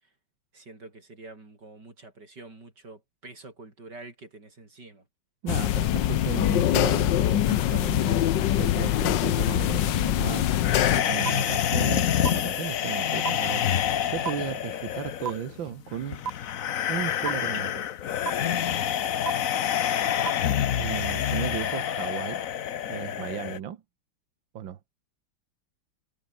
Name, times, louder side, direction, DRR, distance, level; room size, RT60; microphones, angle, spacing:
voice 1, 0.5-5.0 11.1-11.7 18.6-18.8, right 2 dB, 60° right, 6.5 m, -46 dB
voice 2, 5.4-16.3 16.9-17.8 20.7-22.4 22.9-23.8 24.5-24.8, right 9 dB, 85° right, 2.0 m, -35 dB
sound 1, 5.5-11.0, left 12 dB, 75° left, 1.5 m, -23 dB
sound 2, 10.6-23.6, left 10 dB, 55° left, 1.1 m, -27 dB
sound 3, 11.3-11.4 12.2-12.3 13.2-13.3 14.3-14.4 15.3-15.4 16.3-16.4 17.3-17.4 18.3-18.4 19.3-19.4 20.3-20.4, right 7 dB, 40° right, 1.0 m, -28 dB
omnidirectional pair, 2.0 m